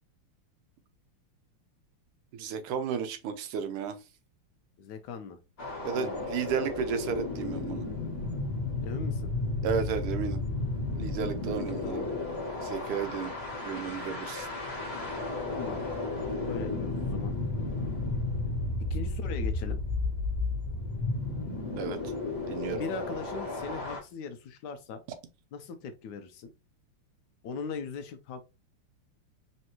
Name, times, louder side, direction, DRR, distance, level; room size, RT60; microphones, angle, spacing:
voice 1, 2.3-4.0 5.8-7.9 9.6-10.4 10.9-12.1 12.6-13.3 13.6-14.5 21.8-22.0 22.5-22.8, right 7 dB, 85° right, 1.6 m, -33 dB
voice 2, 4.8-5.4 5.9-6.3 8.8-9.3 11.8-12.1 15.5-15.8 16.4-17.4 18.9-19.8 22.7-25.0 25.5-26.5 27.4-28.4, left 5 dB, 85° left, 0.9 m, -39 dB
sound 1, 5.6-24.0, left 2 dB, 35° left, 1.2 m, -33 dB
4.3 x 3.1 x 2.9 m
omnidirectional pair, 2.4 m